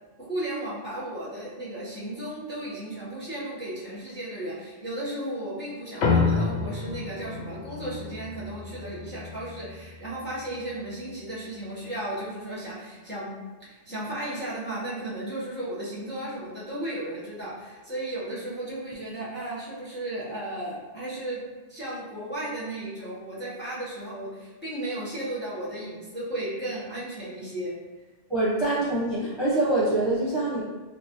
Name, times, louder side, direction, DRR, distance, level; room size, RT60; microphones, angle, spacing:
voice 1, 0.2-13.3 13.6-21.4 21.7-27.7, right 1 dB, 10° left, -8 dB, 0.9 m, -35 dB
sound 1, 6.0-10.7, left 4 dB, 75° left, 0.9 m, -29 dB
voice 2, 28.3-30.6, right 2 dB, 25° right, -10 dB, 0.8 m, -24 dB
3.3 x 3.2 x 2.8 m, 1.3 s
omnidirectional pair, 1.2 m